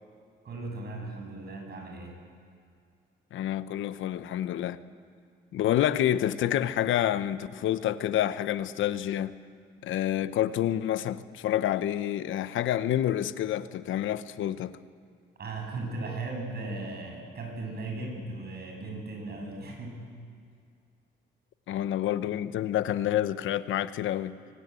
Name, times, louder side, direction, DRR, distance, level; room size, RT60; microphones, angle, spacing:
voice 1, 0.4-2.1 15.4-20.0, right 2 dB, 55° right, 7.7 m, -37 dB
voice 2, 3.3-4.8 5.5-9.4 9.8-14.8 21.7-24.4, left 11 dB, 80° left, 0.9 m, -28 dB
24.0 x 18.5 x 8.3 m
cardioid pair, 90°, 20 cm